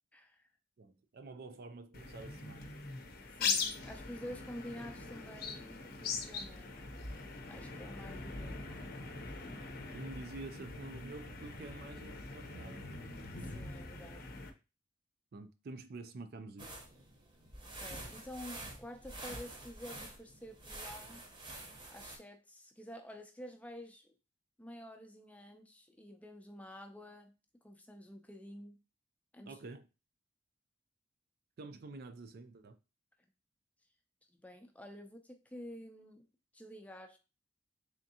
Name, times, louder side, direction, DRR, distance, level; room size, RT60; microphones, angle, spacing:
voice 1, 0.1-0.4 3.4-6.7 7.5-8.6 13.3-14.2 17.8-21.2 21.9-24.1 24.6-27.3 27.6-28.8 29.3-29.6 34.3-36.3 36.5-37.2, equal, 10° left, 0.5 m, -49 dB
voice 2, 0.8-2.7 9.9-12.9 15.3-16.8 29.5-29.9 31.6-32.8, right 3 dB, 55° right, 0.4 m, -48 dB
sound 1, 1.9-14.5, left 4 dB, 50° left, 0.7 m, -41 dB
sound 2, 16.6-22.2, right 1 dB, 25° right, 0.9 m, -48 dB
3.6 x 3.5 x 2.7 m
head